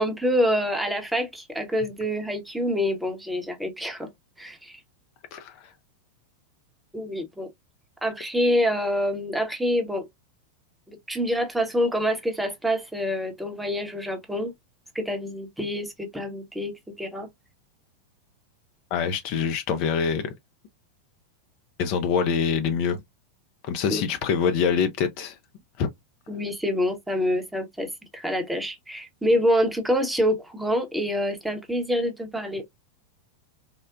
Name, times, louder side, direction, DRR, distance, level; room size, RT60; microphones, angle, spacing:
voice 1, 0.0-4.1 4.4-4.8 6.9-7.5 8.0-10.1 10.9-14.5 14.9-17.3 23.9-24.0 26.3-32.6, equal, 5° right, 0.8 m, -26 dB
voice 2, 18.9-20.3 21.8-23.0 23.6-25.4 25.8-25.9, left 6 dB, 45° left, 0.4 m, -25 dB
3.6 x 2.1 x 2.3 m
figure-of-eight pair, 90°, 0 cm